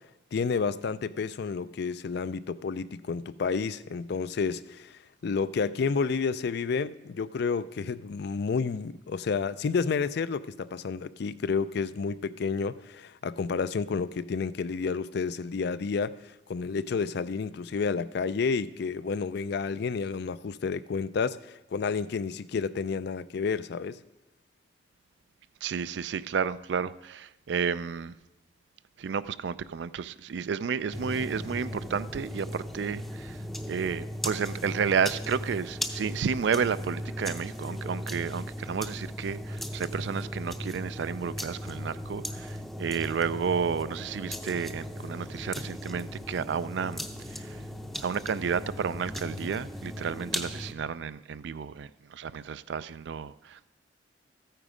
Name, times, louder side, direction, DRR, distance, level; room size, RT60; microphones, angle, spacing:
voice 1, 0.3-4.9 5.2-16.2 16.5-24.0, left 5 dB, 60° left, 15 dB, 0.4 m, -30 dB
voice 2, 25.6-28.1 29.0-33.4 33.7-47.1 48.0-53.7, right 6 dB, 65° right, 16 dB, 0.4 m, -31 dB
sound 1, 30.9-50.7, equal, ahead, 0.6 m, -37 dB
13.5 x 9.1 x 5.0 m, 1.0 s
head